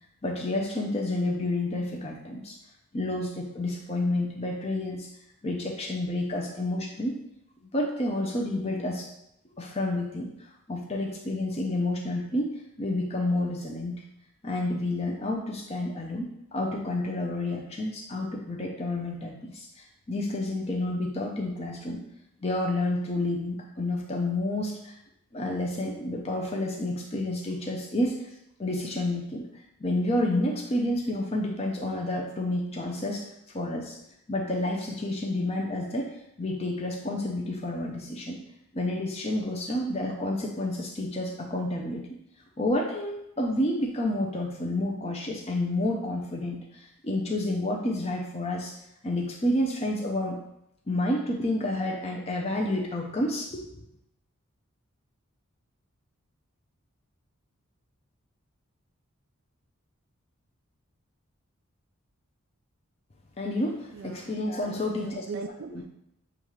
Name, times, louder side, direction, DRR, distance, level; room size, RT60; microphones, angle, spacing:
voice 1, 0.2-2.6 2.9-5.1 5.4-7.2 7.7-9.1 9.6-14.0 14.4-19.7 20.1-22.0 22.4-25.0 25.3-28.3 28.6-29.5 29.8-34.0 34.3-36.1 36.4-38.4 38.7-42.1 42.6-48.8 49.0-50.4 50.9-53.8 63.4-65.3 65.7-65.8, left 1 dB, 30° left, 0 dB, 0.5 m, -30 dB
voice 2, 63.9-65.9, right 4 dB, 65° right, 4 dB, 0.3 m, -40 dB
7.0 x 2.4 x 3.1 m, 0.80 s
head